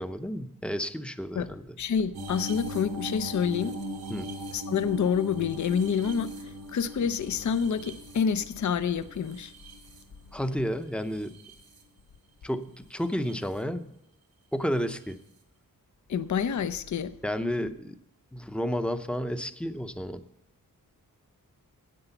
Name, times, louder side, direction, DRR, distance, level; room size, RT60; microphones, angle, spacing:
voice 1, 0.0-1.8 4.1-4.3 10.3-11.3 12.4-13.9 14.5-15.2 17.2-17.9 18.3-20.2, equal, 5° left, 0.6 m, -31 dB
voice 2, 1.8-3.7 4.5-9.5 16.1-17.1, left 7 dB, 55° left, 0.6 m, -28 dB
sound 1, 2.1-10.5 11.0-11.8 13.0-13.3 15.1-15.2, equal, 90° right, 2.0 m, -40 dB
9.9 x 8.8 x 6.9 m
wide cardioid pair, 100°, 36 cm